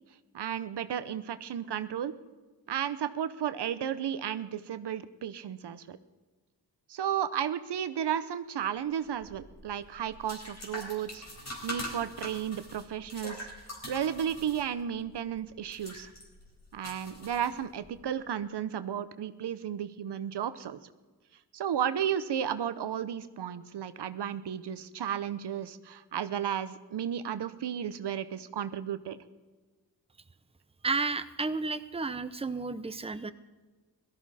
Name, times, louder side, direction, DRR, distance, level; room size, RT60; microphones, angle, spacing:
voice 1, 0.3-2.1 2.7-6.0 6.9-11.2 11.6-13.4 13.9-16.1 16.7-20.8 21.5-29.2, right 9 dB, 80° right, 13 dB, 0.8 m, -33 dB
sound 1, 9.1-18.0, equal, 40° left, 4.5 m, -44 dB
voice 2, 30.8-33.3, right 4 dB, 15° right, 11 dB, 0.7 m, -32 dB
17.0 x 13.5 x 4.2 m, 1.3 s
cardioid pair, 60°, 40 cm